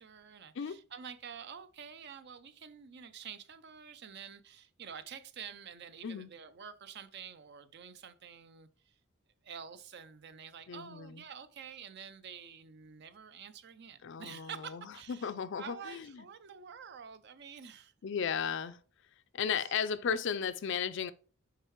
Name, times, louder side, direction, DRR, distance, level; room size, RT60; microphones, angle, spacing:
voice 1, 0.0-8.9 9.4-17.9, right 7 dB, 55° right, 0.5 m, -48 dB
voice 2, 10.7-11.2 14.0-14.8 15.1-16.2 18.0-18.8 19.3-21.1, left 7 dB, 60° left, 0.4 m, -35 dB
6.6 x 4.6 x 3.1 m
head